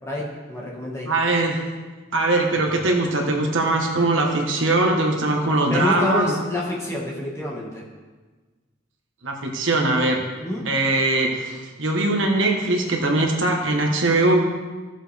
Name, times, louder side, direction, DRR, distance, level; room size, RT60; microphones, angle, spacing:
voice 1, 0.0-1.1 5.6-7.8 10.4-10.7, left 1 dB, 15° left, -3 dB, 1.8 m, -28 dB
voice 2, 1.0-1.6 2.1-6.3 9.2-10.2 10.6-14.4, right 2 dB, 75° right, 1 dB, 1.4 m, -21 dB
14.5 x 7.3 x 3.5 m, 1.3 s
head